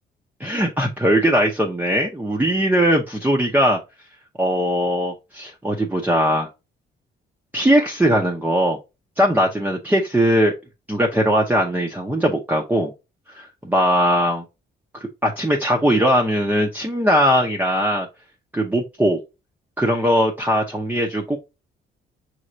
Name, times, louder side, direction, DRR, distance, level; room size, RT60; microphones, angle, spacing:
voice 1, 0.4-3.8 4.4-6.5 7.5-8.8 9.2-10.5 10.9-12.9 13.3-14.4 14.9-18.1 18.5-19.2 19.8-21.4, equal, 10° right, 0.7 m, -20 dB
5.6 x 3.2 x 2.5 m
cardioid pair, 90°, 20 cm